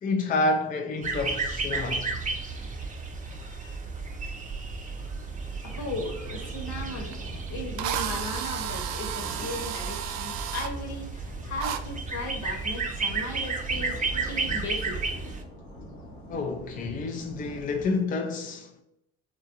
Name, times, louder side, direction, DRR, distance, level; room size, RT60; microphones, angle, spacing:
voice 1, 0.0-2.1 16.3-18.8, left 3 dB, 25° left, 0.4 m, -29 dB
sound 1, 1.0-15.4, right 4 dB, 25° right, 0.6 m, -33 dB
sound 2, 1.6-18.0, equal, 85° left, 0.9 m, -46 dB
voice 2, 5.6-7.2 7.5-15.0, left 2 dB, 60° left, 1.1 m, -37 dB
Drill, 7.1-7.2 7.8-10.7 11.6-11.8, right 9 dB, 65° right, 0.4 m, -33 dB
3.8 x 2.2 x 2.8 m
hypercardioid pair, 60°, 32 cm